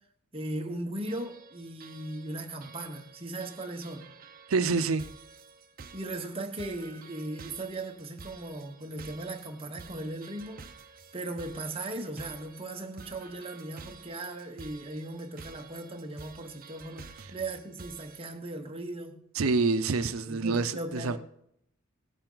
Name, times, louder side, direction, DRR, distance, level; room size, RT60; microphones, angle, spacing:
voice 1, 0.3-4.1 5.9-10.6 11.1-19.2 20.3-21.2, right 2 dB, 25° right, 1.2 m, -38 dB
sound 1, 1.1-18.2, right 4 dB, 45° right, 0.8 m, -50 dB
voice 2, 4.5-5.1 17.2-17.3 19.3-21.2, right 4 dB, 80° right, 0.6 m, -27 dB
17.5 x 8.9 x 4.0 m
head